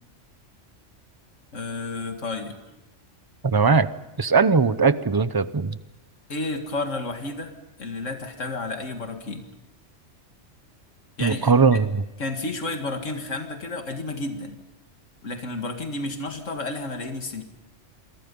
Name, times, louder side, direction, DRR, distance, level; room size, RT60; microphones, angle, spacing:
voice 1, 1.5-2.6 6.3-7.5 7.8-9.4 11.2-11.8 12.2-14.6 15.2-17.4, left 2 dB, 85° left, 5 dB, 2.3 m, -31 dB
voice 2, 3.4-3.9 4.2-5.8 11.2-12.0, right 4 dB, 25° right, 14 dB, 0.7 m, -19 dB
28.0 x 24.0 x 5.4 m, 1.0 s
omnidirectional pair, 1.3 m